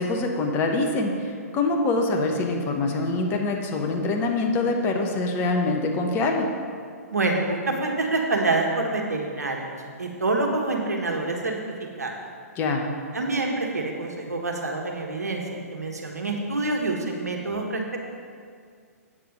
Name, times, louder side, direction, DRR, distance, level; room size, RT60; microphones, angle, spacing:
voice 1, 0.0-6.5 12.6-12.8, left 3 dB, 25° left, 2 dB, 1.0 m, -24 dB
voice 2, 7.1-9.7 10.0-11.5 12.0-12.1 13.1-17.8, right 2 dB, 80° right, 1 dB, 1.4 m, -26 dB
8.4 x 6.7 x 5.3 m, 2.1 s
figure-of-eight pair, 120°, 9 cm